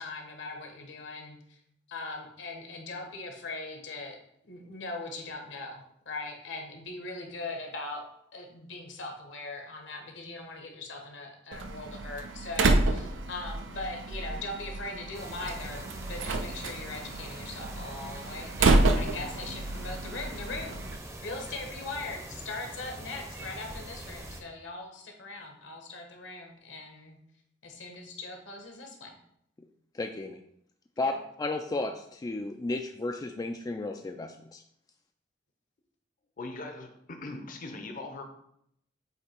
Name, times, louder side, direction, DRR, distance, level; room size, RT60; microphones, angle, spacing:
voice 1, 0.0-1.6 1.9-8.1 8.3-20.8 21.2-27.2 27.6-29.1 31.0-31.2, left 2 dB, 75° left, 3 dB, 1.2 m, -40 dB
Slam, 11.5-21.0, right 2 dB, 85° right, 0.5 m, -29 dB
sound 1, 15.1-24.4, right 1 dB, 15° right, 0.7 m, -43 dB
voice 2, 29.9-30.4 31.0-34.6, left 2 dB, 20° left, 5 dB, 0.3 m, -33 dB
voice 3, 36.4-38.2, left 2 dB, 45° left, 4 dB, 0.7 m, -40 dB
8.0 x 2.8 x 4.4 m, 0.72 s
head